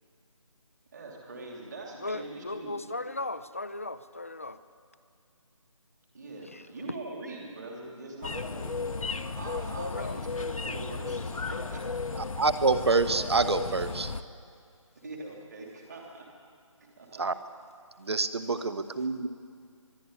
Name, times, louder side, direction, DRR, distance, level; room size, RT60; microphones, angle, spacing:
voice 1, 0.9-2.7 6.1-8.9 9.3-11.8 15.0-16.2 16.9-17.2, right 2 dB, 30° right, 0 dB, 3.0 m, -42 dB
voice 2, 2.0-4.6 6.4-6.7 9.8-10.2, left 2 dB, 25° left, 12 dB, 0.5 m, -37 dB
sound 1, 8.2-14.2, left 4 dB, 80° left, 1.0 m, -34 dB
voice 3, 12.4-14.1 17.2-17.3 18.0-19.3, right 3 dB, 50° right, 12 dB, 1.1 m, -26 dB
23.0 x 12.5 x 9.8 m, 2.3 s
figure-of-eight pair, 175°, 17 cm